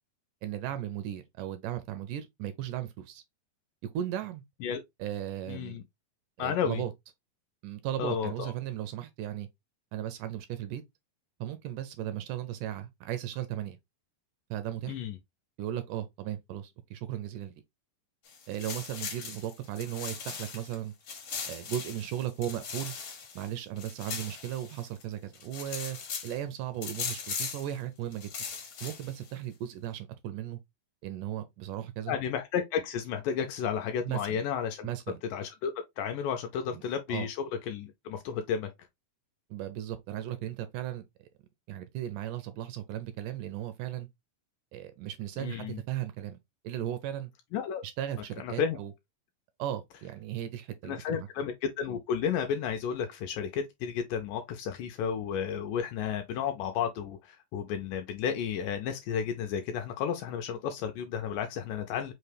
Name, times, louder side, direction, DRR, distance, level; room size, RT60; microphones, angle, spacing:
voice 1, 0.4-3.2 3.8-4.4 5.0-5.8 6.4-6.9 7.6-9.5 9.9-10.8 11.4-13.8 14.5-15.0 15.6-17.6 18.5-20.9 21.5-23.0 23.4-26.0 26.2-28.3 28.8-30.6 31.0-32.1 34.1-34.4 34.8-35.2 36.7-36.8 37.1-37.3 39.5-41.1 41.7-44.1 44.7-46.4 46.6-47.3 47.8-48.9 49.6-51.3, right 11 dB, 80° right, 1.9 m, -36 dB
voice 2, 5.5-5.8 6.4-6.8 8.0-8.5 14.9-15.2 32.1-34.9 35.3-37.4 37.7-38.7 45.4-45.8 47.5-47.8 48.4-48.8 50.9-62.1, left 7 dB, 80° left, 2.0 m, -32 dB
sound 1, 18.3-20.8 21.1-25.0 25.3-26.4 26.8-27.7 28.1-29.3, left 6 dB, 60° left, 1.4 m, -39 dB
5.6 x 2.2 x 3.2 m
omnidirectional pair, 4.0 m